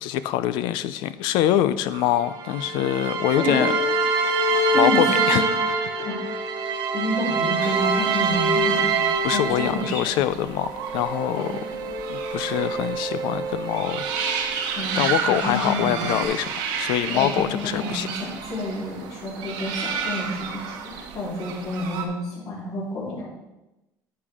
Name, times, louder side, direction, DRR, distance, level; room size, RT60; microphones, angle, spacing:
voice 1, 0.0-3.7 4.8-6.1 7.6-7.8 9.2-11.5 12.1-14.1 15.0-18.1, left 12 dB, 90° left, 13 dB, 0.5 m, -25 dB
sound 1, 1.9-10.2 10.7-14.6 15.0-16.3, right 4 dB, 70° right, 1.0 m, -25 dB
voice 2, 3.4-3.7 4.7-5.4 6.0-6.2 6.9-9.0 9.2-10.1 11.4-11.5 14.8-16.2 17.1-23.3, left 1 dB, 60° left, -10 dB, 3.6 m, -29 dB
sound 2, 7.6-22.1, right 6 dB, 90° right, 1.2 m, -32 dB
10.0 x 6.7 x 3.6 m, 0.99 s
cardioid pair, 115°, 8 cm